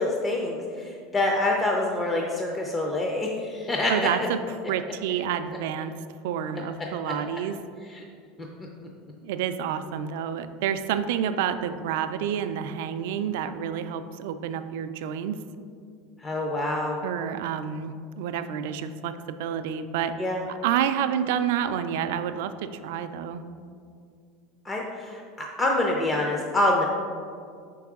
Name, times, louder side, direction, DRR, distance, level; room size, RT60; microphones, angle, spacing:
voice 1, 0.0-3.9 7.0-7.1 7.9-8.0 16.2-17.0 20.2-20.4 24.6-26.8, left 2 dB, 15° left, -1 dB, 0.4 m, -26 dB
voice 2, 3.9-4.4 4.7-5.9 6.2-7.6 9.2-15.4 17.0-20.1 20.5-23.4, right 9 dB, 65° right, 10 dB, 0.3 m, -29 dB
5.8 x 4.6 x 3.5 m, 2.3 s
supercardioid pair, 175°, 0 cm